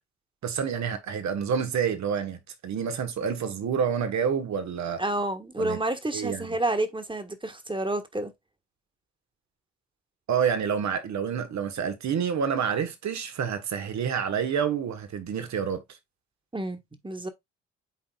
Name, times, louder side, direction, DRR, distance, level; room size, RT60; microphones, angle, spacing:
voice 1, 0.4-5.0 5.6-5.8 6.1-6.5 10.3-15.8, right 7 dB, 65° right, 1.4 m, -28 dB
voice 2, 5.0-8.3 16.5-17.3, right 2 dB, 15° right, 1.5 m, -29 dB
9.8 x 4.1 x 2.4 m
hypercardioid pair, 50°, 30 cm